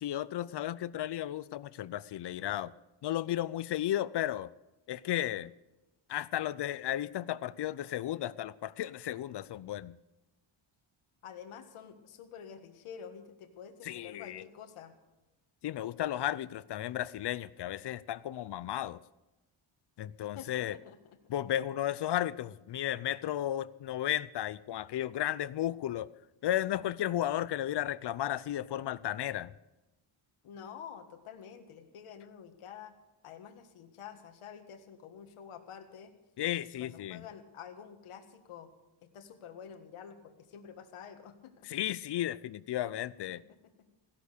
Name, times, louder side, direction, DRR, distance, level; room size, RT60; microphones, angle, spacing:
voice 1, 0.0-2.7 3.0-4.5 4.9-5.5 6.1-10.0 13.8-14.4 15.6-19.0 20.0-20.8 21.3-26.1 26.4-29.5 36.4-37.3 41.7-43.4, left 12 dB, 55° left, 19 dB, 0.6 m, -34 dB
voice 2, 11.2-14.9 20.3-21.0 30.4-32.9 33.2-36.1 36.6-38.7 39.0-41.7 43.2-43.9, left 8 dB, 75° left, 7 dB, 1.7 m, -49 dB
15.5 x 11.5 x 6.8 m, 0.99 s
cardioid pair, 120°, 50 cm